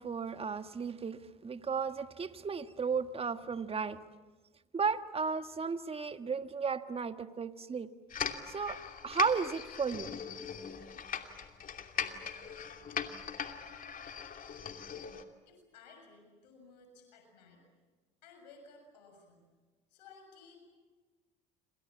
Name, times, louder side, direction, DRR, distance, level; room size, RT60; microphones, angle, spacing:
voice 1, 0.0-4.0 4.7-7.9 8.5-10.2, right 5 dB, 30° right, 1.6 m, -34 dB
sound 1, 8.1-15.2, left 7 dB, 40° left, 2.8 m, -40 dB
voice 2, 15.5-17.6 18.2-19.4 19.9-20.6, left 4 dB, 85° left, 7.0 m, -57 dB
28.0 x 27.0 x 7.4 m
hypercardioid pair, 70°, 21 cm